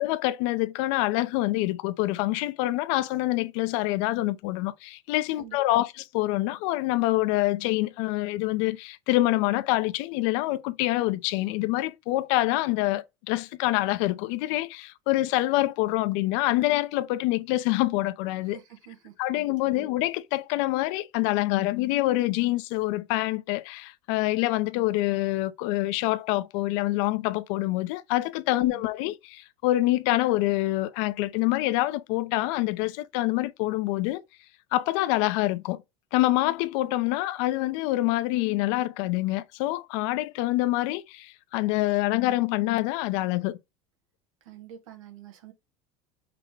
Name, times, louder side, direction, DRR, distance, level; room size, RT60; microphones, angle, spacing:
voice 1, 0.0-18.6 19.2-34.2 34.7-35.8 36.1-43.6, left 17 dB, 70° left, 0.6 m, -26 dB
voice 2, 5.4-5.8 18.4-19.9 28.5-28.9 44.4-45.5, right 9 dB, 90° right, 1.2 m, -47 dB
5.9 x 2.1 x 3.4 m
supercardioid pair, 110°, 17 cm